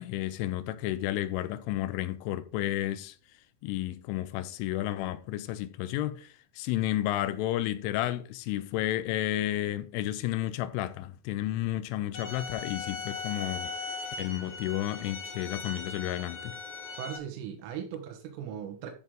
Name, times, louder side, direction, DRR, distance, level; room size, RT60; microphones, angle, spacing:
voice 1, 0.0-3.2 3.6-13.7 14.2-16.6, left 14 dB, 85° left, 3.1 m, -32 dB
sound 1, 12.1-17.2, left 4 dB, 40° left, 1.8 m, -39 dB
voice 2, 17.0-18.9, right 9 dB, 85° right, 3.9 m, -38 dB
13.5 x 6.4 x 3.7 m
omnidirectional pair, 5.7 m